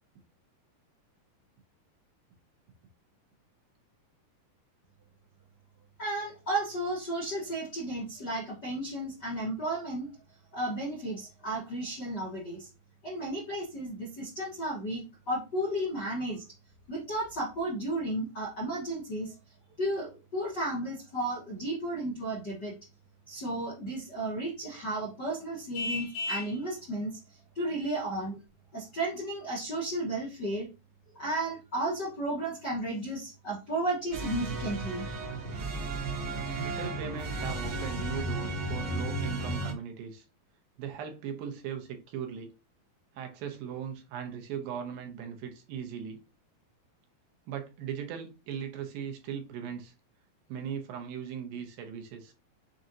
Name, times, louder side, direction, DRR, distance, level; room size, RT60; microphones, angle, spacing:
voice 1, 6.0-10.1 10.5-12.7 13.0-16.4 16.9-19.3 19.8-22.7 23.3-28.4 28.7-30.7 31.1-35.0, right 1 dB, 60° left, 1.1 m, -33 dB
Vehicle horn car horn honking, 25.7-26.6, left 2 dB, 85° left, 3.5 m, -34 dB
sound 1, 34.1-39.7, right 2 dB, 55° right, 1.9 m, -34 dB
voice 2, 36.5-40.3 40.8-42.5 43.1-46.2 47.5-49.9 50.5-52.3, right 8 dB, 80° right, 2.6 m, -38 dB
7.6 x 2.5 x 2.8 m
omnidirectional pair, 4.3 m